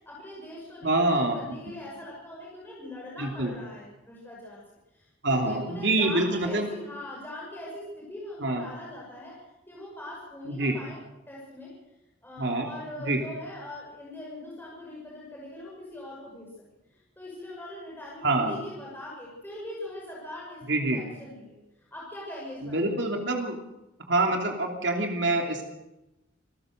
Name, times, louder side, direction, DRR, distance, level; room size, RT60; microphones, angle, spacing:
voice 1, 0.0-4.6 4.9-11.0 11.3-11.7 12.2-16.5 16.9-20.6 20.9-21.6 21.9-22.9, left 1 dB, 10° left, -5 dB, 5.9 m, -41 dB
voice 2, 0.8-1.3 3.2-3.5 5.2-6.7 8.4-8.6 10.5-10.8 12.4-12.7 13.1-13.2 18.2-18.5 20.7-21.0 22.6-23.6 24.1-25.6, right 2 dB, 65° right, 2 dB, 3.0 m, -26 dB
27.5 x 14.5 x 6.6 m, 0.97 s
head